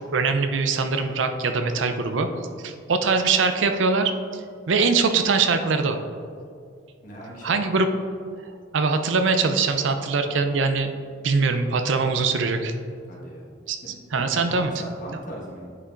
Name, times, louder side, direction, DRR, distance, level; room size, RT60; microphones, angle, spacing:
voice 1, 0.1-2.3 2.6-4.1 4.7-6.0 7.4-7.9 8.7-10.9 11.2-12.7 13.7-13.8 14.1-14.7, right 4 dB, 75° right, 7 dB, 0.5 m, -22 dB
voice 2, 7.0-7.9 13.1-13.4 13.8-15.7, equal, 40° left, -4 dB, 1.4 m, -40 dB
9.6 x 5.6 x 2.5 m, 2.3 s
head